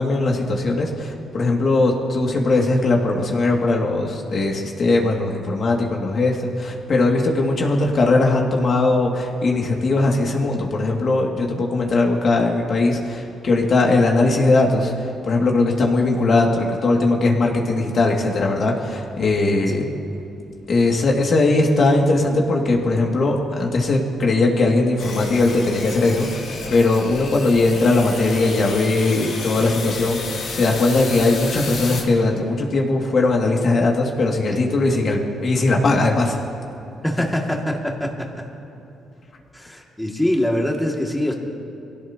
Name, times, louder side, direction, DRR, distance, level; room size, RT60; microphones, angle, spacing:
voice 1, 0.0-19.9 20.7-36.4, left 2 dB, 50° left, 0 dB, 2.4 m, -19 dB
sound 1, 25.0-32.0, left 4 dB, 80° left, 3.0 m, -31 dB
voice 2, 37.0-38.5 39.5-41.3, left 1 dB, 5° left, -1 dB, 2.4 m, -23 dB
23.5 x 16.5 x 3.0 m, 2.9 s
cardioid pair, 90°, 0 cm